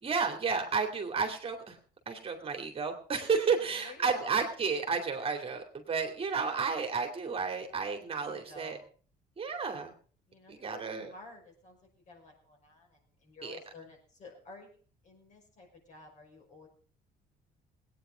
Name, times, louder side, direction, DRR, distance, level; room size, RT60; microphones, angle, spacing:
voice 1, 0.0-1.8 2.1-8.8 9.4-9.9 10.5-11.1 13.4-13.6, right 5 dB, 35° right, 4 dB, 2.5 m, -32 dB
voice 2, 3.5-4.4 6.4-6.9 7.5-8.9 10.3-14.8 15.0-16.7, left 3 dB, 45° left, 0 dB, 5.8 m, -52 dB
18.0 x 9.4 x 5.0 m, 0.43 s
cardioid pair, 110°, 17 cm